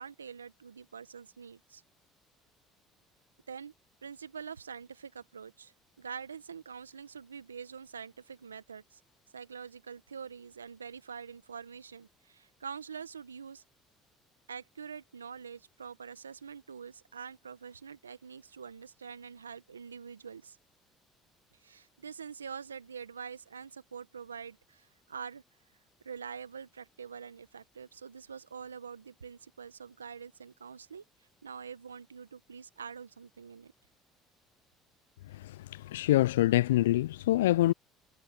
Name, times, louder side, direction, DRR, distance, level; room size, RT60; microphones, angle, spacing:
voice 1, 0.0-1.8 3.5-3.7 4.0-9.0 9.3-13.6 14.5-20.6 21.6-25.4 26.0-31.0 31.4-33.7, right 6 dB, 90° right, 1.6 m, -45 dB
voice 2, 35.4-37.7, left 15 dB, 80° left, 0.4 m, -25 dB
figure-of-eight pair, 60°, 0 cm